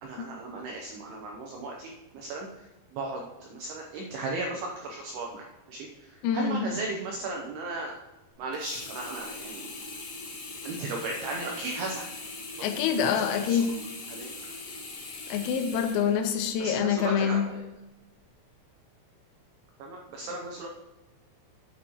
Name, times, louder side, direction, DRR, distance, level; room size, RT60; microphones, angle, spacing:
voice 1, 0.0-8.0 8.4-9.7 10.6-12.1 12.6-13.6 14.1-14.3 16.6-17.6 19.8-20.7, right 2 dB, 85° right, 0 dB, 2.2 m, -36 dB
voice 2, 6.2-6.6 12.6-13.7 15.3-17.5, left 7 dB, 90° left, 7 dB, 3.5 m, -26 dB
Sink (filling or washing), 8.5-16.8 17.3-17.4, left 3 dB, 60° left, 1.8 m, -41 dB
9.9 x 7.8 x 3.0 m, 1.1 s
omnidirectional pair, 5.8 m